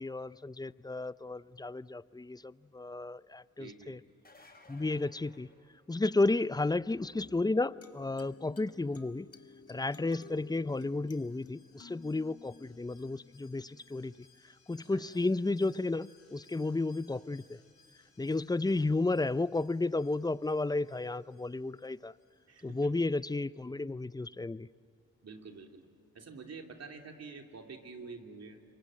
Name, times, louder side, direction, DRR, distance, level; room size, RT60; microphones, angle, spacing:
voice 1, 0.0-4.0 4.7-5.5 5.9-9.3 9.7-14.1 14.4-17.6 18.2-22.1 22.6-24.7, left 2 dB, 15° left, 0.5 m, -32 dB
voice 2, 3.6-4.0 14.8-15.0 22.5-22.9 25.2-25.9 26.1-28.6, right 4 dB, 60° right, 3.0 m, -48 dB
sound 1, 4.1-6.3 11.8-11.9 13.8-13.9, left 2 dB, 30° left, 6.6 m, -59 dB
sound 2, 7.2-14.2, left 5 dB, 50° left, 1.8 m, -55 dB
Alarm, 9.3-22.8 23.1-23.2, left 5 dB, 85° left, 5.7 m, -67 dB
27.0 x 23.5 x 7.7 m
cardioid pair, 55°, 29 cm